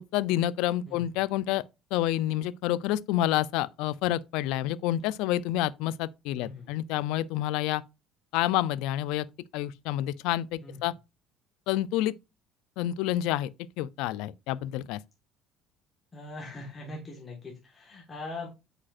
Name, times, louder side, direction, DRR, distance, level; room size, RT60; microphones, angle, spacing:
voice 1, 0.0-1.6 1.9-7.8 8.3-9.3 9.5-10.9 11.7-12.1 12.8-13.5 13.8-15.0, left 13 dB, 80° left, 0.3 m, -28 dB
voice 2, 6.4-6.7 10.6-10.8 16.1-18.5, left 2 dB, 20° left, 1.3 m, -41 dB
8.4 x 5.0 x 2.4 m
cardioid pair, 150°, 0 cm